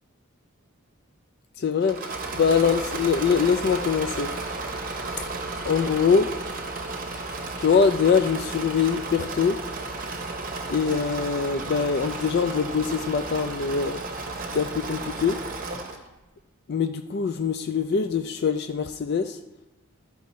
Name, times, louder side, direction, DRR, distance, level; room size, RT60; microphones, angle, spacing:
voice 1, 1.6-2.0 2.3-4.3 5.6-6.3 7.6-9.6 10.7-14.0 14.5-15.4 16.7-19.4, left 6 dB, 45° left, 8 dB, 0.3 m, -23 dB
Engine / Mechanisms, 1.8-16.1, right 3 dB, 40° right, 0.8 m, -33 dB
13.0 x 4.6 x 4.2 m, 1.1 s
head